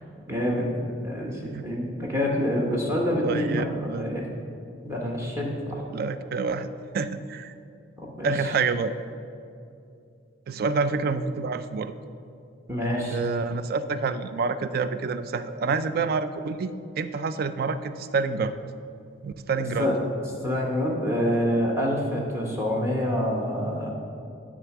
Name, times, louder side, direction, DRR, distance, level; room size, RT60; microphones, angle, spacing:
voice 1, 0.3-0.7 1.0-4.2 4.8-5.8 8.0-8.3 12.7-13.2 19.8-19.9 20.4-23.9, equal, 15° right, -2 dB, 0.9 m, -26 dB
voice 2, 3.2-4.1 5.9-7.5 8.2-8.9 10.5-11.9 13.1-18.6 19.2-19.9, right 4 dB, 50° right, 12 dB, 0.3 m, -28 dB
10.5 x 3.6 x 5.9 m, 2.5 s
head